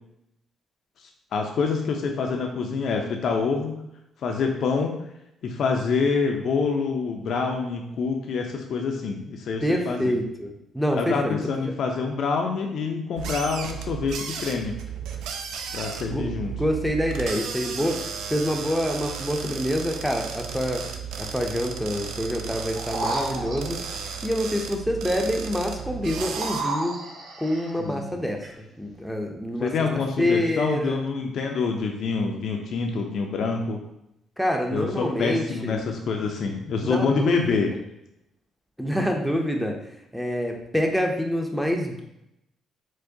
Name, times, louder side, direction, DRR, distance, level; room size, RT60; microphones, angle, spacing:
voice 1, 1.3-3.8 4.2-4.9 5.4-10.1 11.0-14.8 15.7-16.5 27.8-28.1 29.6-33.8 34.7-37.7, left 5 dB, 65° left, 2 dB, 0.4 m, -26 dB
voice 2, 9.6-11.4 16.1-20.9 21.2-23.8 24.2-27.0 27.4-29.7 30.2-31.1 34.4-35.8 36.8-37.6 38.8-39.8 40.1-42.0, equal, ahead, 2 dB, 0.5 m, -26 dB
sound 1, 13.2-26.6, right 7 dB, 85° right, 0.3 m, -34 dB
sound 2, 22.7-24.1 26.1-27.8 28.4-28.5, right 2 dB, 65° right, 0.8 m, -32 dB
4.5 x 2.1 x 2.6 m, 0.82 s
cardioid pair, 95°, 0 cm